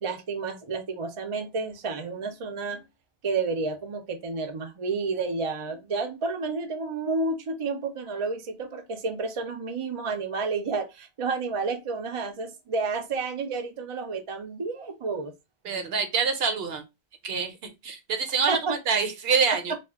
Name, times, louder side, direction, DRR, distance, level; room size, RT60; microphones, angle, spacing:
voice 1, 0.0-2.8 3.2-15.3 18.5-18.8, right 4 dB, 45° right, 0.4 m, -30 dB
voice 2, 15.6-16.8 17.2-17.6 17.8-19.7, right 5 dB, 70° right, 0.9 m, -26 dB
2.4 x 2.2 x 3.4 m
omnidirectional pair, 1.1 m